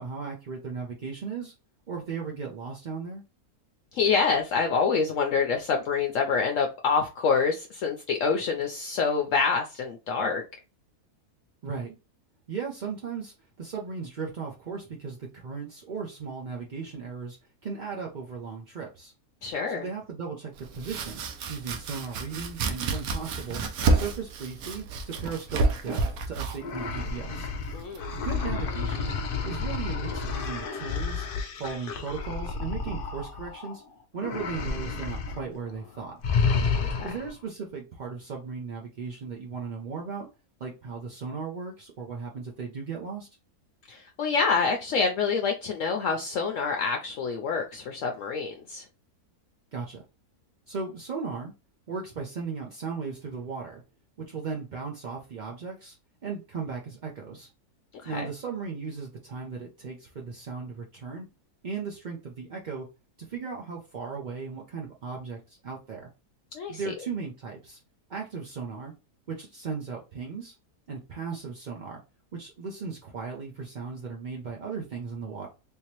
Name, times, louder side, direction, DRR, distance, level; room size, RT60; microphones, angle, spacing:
voice 1, 0.0-1.5 1.9-3.2 11.6-12.0 12.5-17.4 17.6-19.1 19.7-21.2 21.5-23.6 23.9-27.5 28.1-29.1 29.4-31.3 31.6-33.8 34.1-36.2 37.0-40.3 40.6-43.3 49.7-50.0 50.7-51.5 51.9-53.8 54.2-56.0 56.2-57.5 58.0-61.3 61.6-62.9 63.2-66.1 66.7-67.8 68.1-68.9 69.3-70.5 70.9-72.0 72.3-75.5, right 5 dB, 55° right, 0.5 m, -36 dB
voice 2, 3.9-10.4 19.4-19.9 27.7-28.2 36.8-37.1 43.9-48.8 58.0-58.3 66.5-66.8, left 5 dB, 65° left, 0.8 m, -27 dB
Domestic sounds home sounds, 20.6-28.3, right 3 dB, 75° right, 1.1 m, -30 dB
sound 1, 26.6-33.8 34.2-35.4 35.7-35.9 36.2-37.4, left 5 dB, 85° left, 0.4 m, -30 dB
3.5 x 2.8 x 3.0 m
omnidirectional pair, 1.6 m